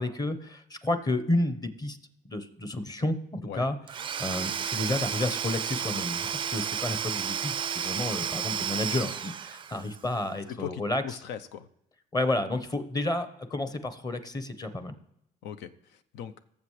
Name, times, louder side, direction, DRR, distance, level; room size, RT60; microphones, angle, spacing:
voice 1, 0.0-2.0 2.3-3.8 4.2-11.0 12.1-15.0, left 2 dB, 25° left, 10 dB, 1.0 m, -31 dB
Domestic sounds home sounds / Tools, 3.9-10.0, right 8 dB, 30° right, 0.4 m, -32 dB
voice 2, 10.5-11.7 15.4-16.3, left 9 dB, 90° left, 11 dB, 0.7 m, -39 dB
18.0 x 7.3 x 3.2 m, 0.81 s
cardioid pair, 110°, 17 cm